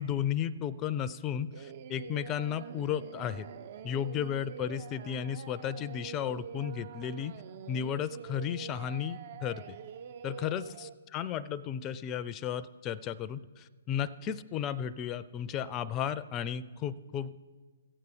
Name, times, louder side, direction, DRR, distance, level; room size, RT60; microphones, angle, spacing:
voice 1, 0.0-3.4 3.8-7.3 7.7-9.8 10.2-17.4, left 9 dB, 25° left, 15 dB, 0.4 m, -34 dB
Singing, 1.5-10.9, right 7 dB, 45° right, 0.5 m, -45 dB
15.0 x 8.1 x 5.1 m, 1.4 s
figure-of-eight pair, 125°, 0 cm